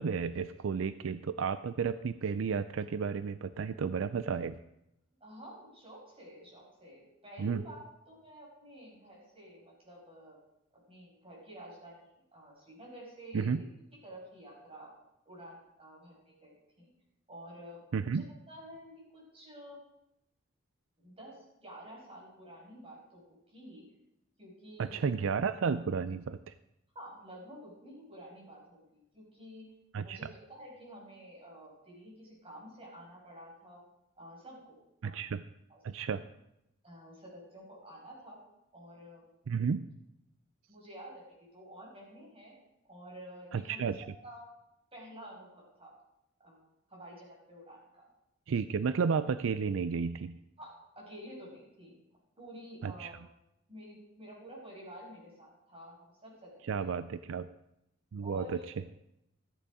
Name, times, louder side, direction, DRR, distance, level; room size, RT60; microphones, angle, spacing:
voice 1, 0.0-4.6 7.4-7.6 13.3-13.6 17.9-18.3 24.8-26.5 29.9-30.2 35.0-35.4 35.8-36.2 39.5-39.8 43.5-44.0 48.5-50.4 52.8-53.1 56.6-57.5 58.1-58.6, right 5 dB, 75° right, 13 dB, 0.4 m, -32 dB
voice 2, 5.2-10.4 10.9-13.5 14.0-14.9 15.3-16.9 17.3-19.8 21.0-23.8 24.4-25.0 26.9-29.6 30.0-33.8 34.2-34.7 35.0-35.2 35.7-35.8 36.8-38.4 38.7-39.2 40.7-42.5 42.9-43.8 44.2-44.5 44.9-45.9 46.4-48.0 50.6-52.0 52.4-53.1 53.7-56.9 58.2-58.6, equal, 30° right, -3 dB, 6.1 m, -50 dB
14.0 x 9.3 x 4.9 m, 0.84 s
head